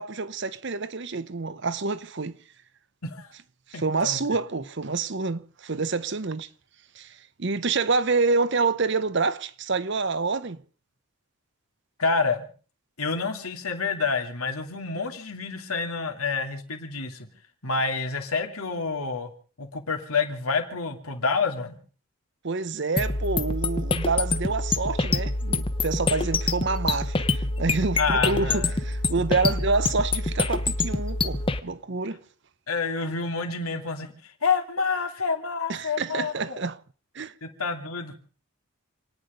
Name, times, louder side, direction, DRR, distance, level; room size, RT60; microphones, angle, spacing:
voice 1, 0.0-2.4 3.7-6.5 6.9-10.6 22.4-32.2 35.7-36.8 37.1-37.3, right 4 dB, 55° right, 0.8 m, -27 dB
voice 2, 3.7-4.2 12.0-12.5 13.0-17.3 17.6-19.3 19.6-21.8 28.0-28.7 32.7-36.6 37.4-38.2, left 4 dB, 85° left, 2.8 m, -28 dB
sound 1, 23.0-31.6, left 2 dB, 25° left, 0.9 m, -26 dB
28.0 x 9.9 x 5.2 m
head